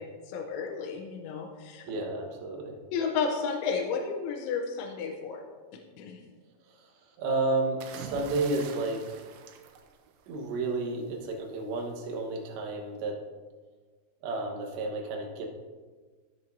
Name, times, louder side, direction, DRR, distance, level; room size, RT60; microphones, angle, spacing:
voice 1, 0.3-1.8 2.9-5.4 6.0-6.2, left 5 dB, 80° left, 1 dB, 3.1 m, -32 dB
voice 2, 1.9-2.8 6.7-6.9 7.2-9.2 10.3-13.2 14.2-15.5, right 2 dB, 70° right, 1 dB, 3.2 m, -31 dB
sound 1, 7.8-10.6 11.8-12.1, right 6 dB, 90° right, 3.4 m, -44 dB
15.0 x 6.9 x 2.7 m, 1.4 s
omnidirectional pair, 5.8 m